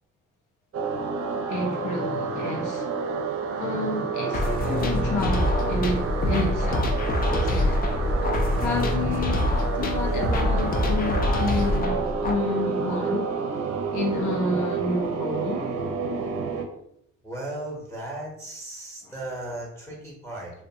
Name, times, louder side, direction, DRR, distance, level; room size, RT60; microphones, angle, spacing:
sound 1, 0.7-16.7, right 5 dB, 50° right, 0.5 m, -30 dB
voice 1, 1.5-3.0 3.6-7.0 7.3-7.9 8.6-9.5 9.7-13.3 13.9-15.8, left 2 dB, 80° left, 0.8 m, -29 dB
sound 2, 4.3-12.3, left 2 dB, 30° left, 0.4 m, -26 dB
sound 3, 4.6-11.8, left 1 dB, 65° left, 1.2 m, -29 dB
voice 2, 17.2-20.5, right 1 dB, 5° left, 0.8 m, -36 dB
2.5 x 2.2 x 2.7 m
cardioid pair, 90°, 30 cm